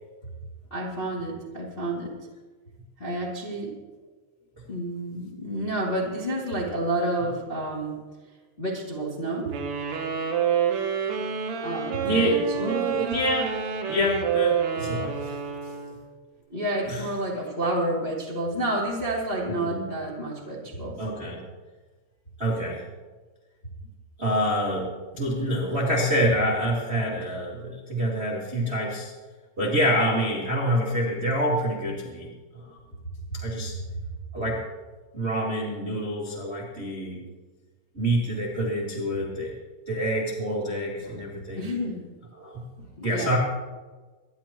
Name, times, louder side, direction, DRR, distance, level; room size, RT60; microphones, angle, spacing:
voice 1, 0.7-2.1 3.0-3.7 4.7-8.0 8.6-9.5 11.6-12.9 16.5-21.0 41.5-42.0 43.0-43.3, right 1 dB, 25° left, -4 dB, 1.1 m, -29 dB
sound 1, 9.5-16.1, right 8 dB, 70° right, 3.6 m, -28 dB
voice 2, 12.0-13.6 13.9-15.4 16.9-17.1 19.4-19.9 21.0-21.4 22.4-22.8 24.2-29.1 29.6-32.3 32.5-32.8 33.4-33.7 34.3-34.6 35.1-37.2 37.9-39.5 39.9-41.7 42.3-42.6 43.0-43.4, equal, 40° right, -4 dB, 0.9 m, -27 dB
25.5 x 11.0 x 3.0 m, 1.3 s
omnidirectional pair, 5.5 m